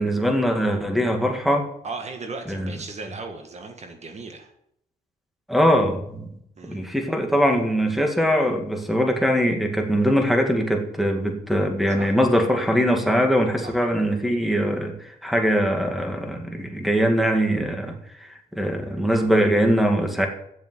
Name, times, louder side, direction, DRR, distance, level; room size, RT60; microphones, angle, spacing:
voice 1, 0.0-1.7 2.5-2.7 5.5-6.3 6.7-20.3, equal, ahead, 4 dB, 2.1 m, -22 dB
voice 2, 1.8-4.5 6.6-6.8 12.0-12.2 13.6-13.8, right 3 dB, 45° right, 4 dB, 1.7 m, -36 dB
7.6 x 7.1 x 7.5 m, 0.74 s
cardioid pair, 80°, 16 cm